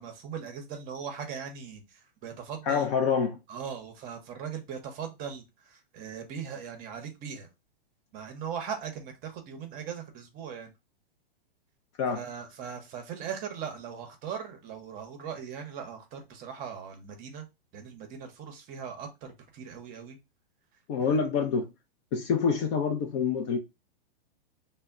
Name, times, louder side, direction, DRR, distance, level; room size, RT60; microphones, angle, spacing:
voice 1, 0.0-2.9 3.5-7.5 8.1-10.7 12.1-17.5 17.7-20.2 21.0-21.2, right 7 dB, 30° right, 0.7 m, -39 dB
voice 2, 2.7-3.4 12.0-12.2 20.9-21.7 22.1-23.6, left 6 dB, 35° left, 0.4 m, -26 dB
2.1 x 2.0 x 3.5 m
hypercardioid pair, 135°, 30 cm